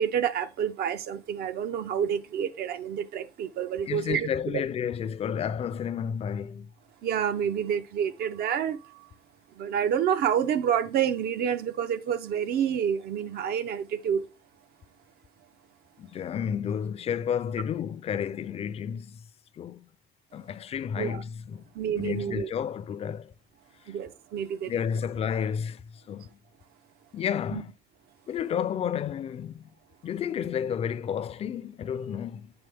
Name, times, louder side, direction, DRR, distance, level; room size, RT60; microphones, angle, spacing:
voice 1, 0.0-4.6 7.0-9.1 9.6-14.3 21.0-21.2 21.7-22.5 23.9-24.7 27.5-27.6, right 8 dB, 65° right, 0.6 m, -28 dB
voice 2, 3.9-6.7 16.0-19.2 19.6-19.8 20.3-21.6 22.0-23.3 24.7-25.8 26.1-26.3 27.1-27.7 28.3-29.6 30.0-32.5, left 8 dB, 35° left, 0.4 m, -31 dB
7.9 x 3.5 x 3.4 m
cardioid pair, 110°, 17 cm